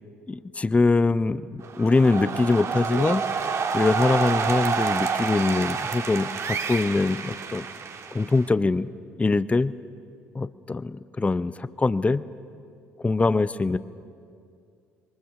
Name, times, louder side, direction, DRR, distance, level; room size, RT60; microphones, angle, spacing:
voice 1, 0.3-3.2 3.7-7.7 8.1-8.9 9.2-9.7 10.3-12.3 13.0-13.8, left 3 dB, 20° left, 16 dB, 0.6 m, -23 dB
sound 1, 1.6-8.5, right 6 dB, 45° right, 1.5 m, -28 dB
28.0 x 23.5 x 6.3 m, 2.3 s
figure-of-eight pair, 50°, 7 cm